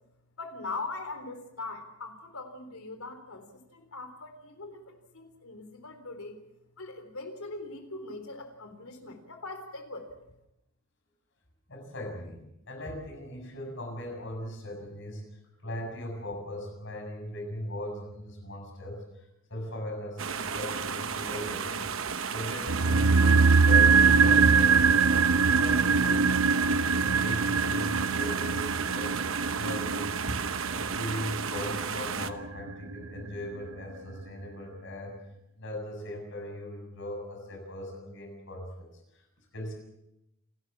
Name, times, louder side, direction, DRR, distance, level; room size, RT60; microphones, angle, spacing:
voice 1, 0.4-3.5 3.7-6.3 6.8-10.3, left 3 dB, 80° left, 7 dB, 3.8 m, -41 dB
voice 2, 11.7-15.2 15.6-19.0 19.5-21.8 22.3-25.0 25.5-26.2 26.6-30.4 30.7-35.2 35.6-38.9 39.5-39.7, left 1 dB, 60° left, 3 dB, 6.9 m, -39 dB
sound 1, 20.2-32.3, right 6 dB, 65° right, 1.0 m, -34 dB
sound 2, 22.7-32.9 33.2-33.3, right 5 dB, 80° right, 0.7 m, -23 dB
29.0 x 13.0 x 7.3 m, 0.85 s
head